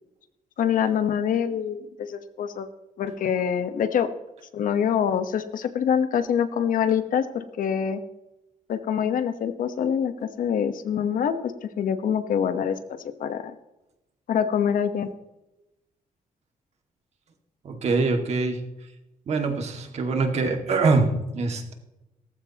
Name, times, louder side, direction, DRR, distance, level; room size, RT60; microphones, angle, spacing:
voice 1, 0.6-2.7 3.0-4.1 4.5-8.0 8.7-12.8 13.2-13.5 14.3-15.1, left 8 dB, 75° left, 9 dB, 1.2 m, -25 dB
voice 2, 17.6-18.6 19.3-21.7, right 3 dB, 50° right, 4 dB, 2.1 m, -24 dB
17.0 x 14.5 x 3.0 m, 0.96 s
wide cardioid pair, 170°, 14 cm